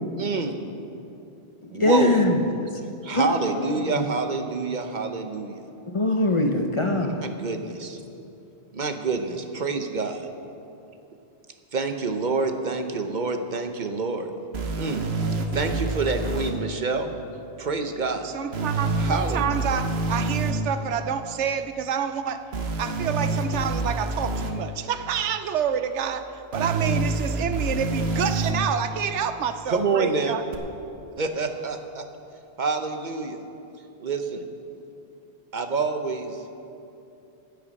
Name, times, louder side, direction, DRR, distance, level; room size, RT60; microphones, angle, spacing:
voice 1, 0.2-0.6 1.7-2.2 3.0-5.6 7.0-8.0 8.7-10.3 11.7-14.3 14.8-15.1 15.5-17.1 17.6-18.3 19.0-19.5 29.7-30.3 31.2-32.0 32.6-33.4 34.0-34.5 35.5-36.6, right 4 dB, 45° right, 6 dB, 0.9 m, -27 dB
voice 2, 1.7-2.4 3.1-3.3 3.5-4.1 5.9-7.2, left 1 dB, 30° left, 3 dB, 0.7 m, -22 dB
sound 1, 14.5-16.5 18.5-20.5 22.5-24.5 26.5-28.5 30.5-30.6, right 2 dB, 65° right, 1.3 m, -27 dB
voice 3, 18.2-22.5 22.8-26.3 26.5-30.4, right 8 dB, 85° right, 10 dB, 1.0 m, -28 dB
15.0 x 9.4 x 5.3 m, 2.7 s
omnidirectional pair, 1.2 m